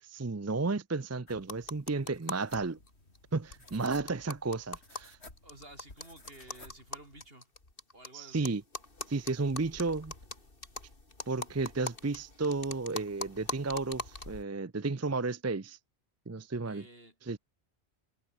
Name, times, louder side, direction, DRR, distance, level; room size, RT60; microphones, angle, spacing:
voice 1, 0.0-2.8 3.3-5.2 8.1-8.6 9.1-10.1 11.3-15.8 16.3-16.9 17.2-17.4, right 3 dB, 20° right, 0.5 m, -33 dB
sound 1, 1.3-7.3, left 2 dB, 75° left, 4.9 m, -56 dB
sound 2, 1.4-2.6 2.9-3.0 3.2-3.3 3.5-8.1 8.4-14.4, left 2 dB, 55° left, 3.7 m, -42 dB
voice 2, 5.4-7.5 7.9-8.6 16.6-17.1, right 1 dB, 60° right, 6.6 m, -53 dB
omnidirectional pair, 1.1 m